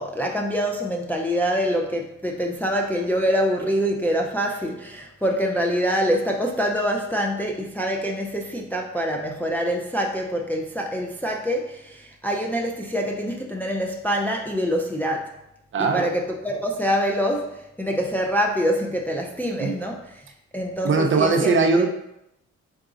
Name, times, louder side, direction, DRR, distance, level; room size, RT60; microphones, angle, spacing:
voice 1, 0.0-15.3 15.9-20.0 20.5-21.5 21.8-21.9, equal, 5° left, 0 dB, 0.3 m, -25 dB
voice 2, 15.7-16.1 19.6-19.7 20.8-21.9, right 4 dB, 40° right, 4 dB, 0.5 m, -20 dB
3.9 x 3.8 x 2.4 m, 0.83 s
cardioid pair, 90°, 30 cm